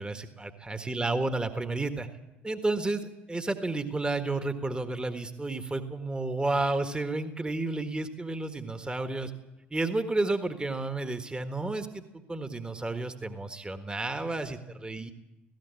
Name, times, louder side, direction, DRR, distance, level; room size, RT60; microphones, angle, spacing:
voice 1, 0.0-2.1 2.4-9.3 9.7-12.0 12.3-15.1, right 2 dB, 15° right, 8 dB, 1.6 m, -31 dB
19.5 x 16.0 x 8.4 m, 0.99 s
figure-of-eight pair, 55°, 7 cm